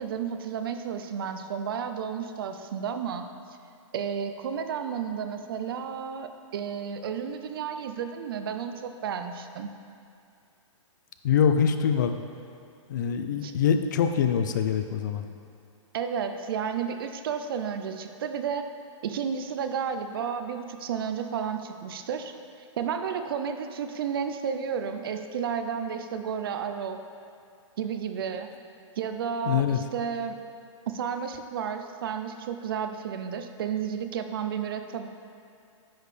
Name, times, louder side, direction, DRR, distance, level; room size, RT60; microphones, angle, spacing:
voice 1, 0.0-3.3 3.9-9.7 13.4-13.5 15.9-18.6 19.0-22.3 22.8-27.0 27.8-28.5 29.0-30.4 30.9-35.1, right 7 dB, 45° right, 8 dB, 0.5 m, -32 dB
voice 2, 11.2-12.1 12.9-15.3 29.5-29.8, left 7 dB, 35° left, 8 dB, 0.4 m, -24 dB
10.0 x 6.5 x 3.3 m, 2.5 s
hypercardioid pair, 165°, 17 cm